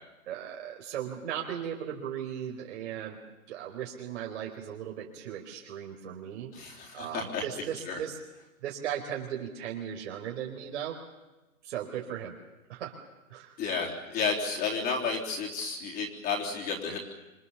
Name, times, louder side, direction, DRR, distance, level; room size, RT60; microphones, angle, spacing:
voice 1, 0.3-3.2 3.5-6.5 6.9-8.2 8.6-11.0 11.6-12.3 12.7-12.9 13.3-13.6, right 9 dB, 55° right, -1 dB, 4.5 m, -37 dB
voice 2, 6.5-7.4 7.8-8.0 13.6-17.0, left 5 dB, 20° left, -1 dB, 3.6 m, -32 dB
27.0 x 23.5 x 7.2 m, 1.1 s
hypercardioid pair, 145°, 42 cm